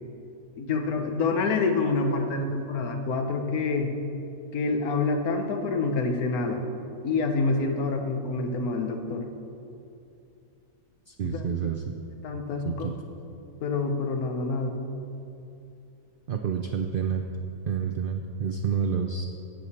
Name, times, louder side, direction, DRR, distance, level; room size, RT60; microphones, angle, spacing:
voice 1, 0.6-3.9 4.5-6.6 7.0-9.3 11.2-11.7 12.2-12.9 13.6-14.8, left 3 dB, 90° left, 5 dB, 1.4 m, -27 dB
voice 2, 11.1-12.0 12.6-12.9 16.3-17.2 17.7-19.3, right 7 dB, 75° right, 5 dB, 0.5 m, -29 dB
16.0 x 7.0 x 4.2 m, 2.7 s
omnidirectional pair, 1.5 m